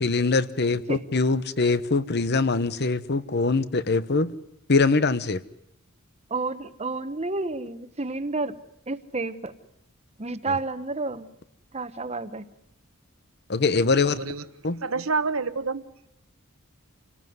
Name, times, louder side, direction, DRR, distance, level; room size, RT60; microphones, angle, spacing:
voice 1, 0.0-4.3 4.7-5.4 13.5-14.2 14.6-14.8, left 3 dB, 50° left, 15 dB, 1.0 m, -23 dB
voice 2, 6.3-8.5 8.9-9.5 10.2-11.3 11.7-12.5, right 3 dB, 30° right, 11 dB, 1.1 m, -30 dB
voice 3, 14.1-14.4 14.8-15.9, right 4 dB, 75° right, 11 dB, 1.3 m, -27 dB
27.5 x 18.0 x 9.5 m, 0.76 s
head